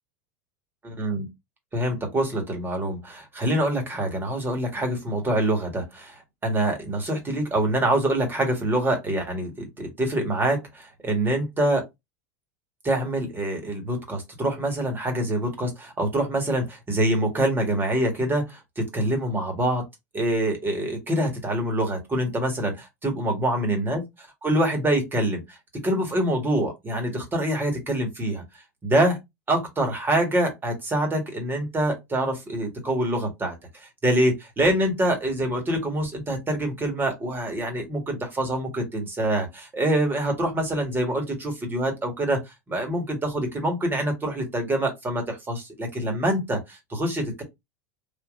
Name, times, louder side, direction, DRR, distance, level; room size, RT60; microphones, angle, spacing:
voice 1, 0.8-1.3 1.7-11.8 12.8-19.8 20.1-25.6 25.8-28.4 28.8-29.2 29.5-47.4, right 1 dB, 20° right, 1.6 m, -25 dB
3.6 x 2.5 x 2.5 m
hypercardioid pair, 95°, 10 cm